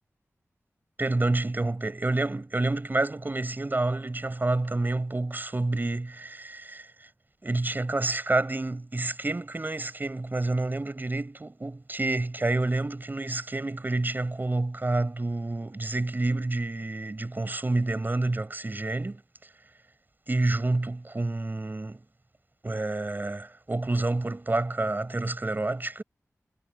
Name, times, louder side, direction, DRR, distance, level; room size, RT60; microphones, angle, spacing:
voice 1, 1.0-6.9 7.4-19.2 20.3-22.0 22.6-26.0, right 2 dB, 35° right, 6.3 m, -28 dB
wide cardioid pair, 85°, 6 cm